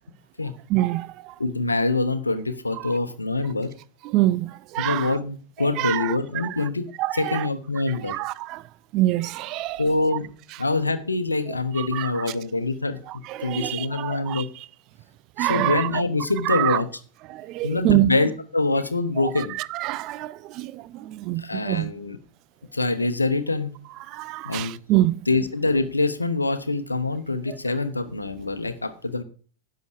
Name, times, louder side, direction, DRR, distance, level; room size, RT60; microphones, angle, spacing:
voice 1, 0.7-1.3 2.8-2.9 4.0-5.1 5.6-6.7 7.0-7.5 8.0-8.6 8.9-9.8 11.8-12.3 13.1-14.4 15.4-16.0 16.4-16.8 17.3-18.1 19.2-21.9 24.1-25.2, right 16 dB, 40° right, 0.5 m, -26 dB
voice 2, 1.4-3.7 4.8-8.2 9.8-10.3 10.6-13.0 13.4-14.5 15.4-16.9 17.6-19.5 21.4-22.2 22.7-23.7 24.4-24.8 25.3-29.2, left 3 dB, 80° left, 0.9 m, -25 dB
10.5 x 7.6 x 4.7 m
figure-of-eight pair, 90°, 0 cm